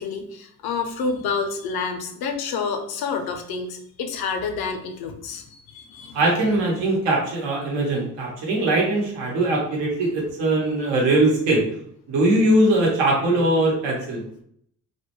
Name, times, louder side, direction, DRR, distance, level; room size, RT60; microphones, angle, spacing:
voice 1, 0.0-6.2, left 5 dB, 55° left, 6 dB, 0.6 m, -29 dB
voice 2, 6.1-11.6 12.1-14.2, right 1 dB, 70° right, -2 dB, 1.0 m, -21 dB
2.3 x 2.1 x 2.9 m, 0.67 s
hypercardioid pair, 50°, 43 cm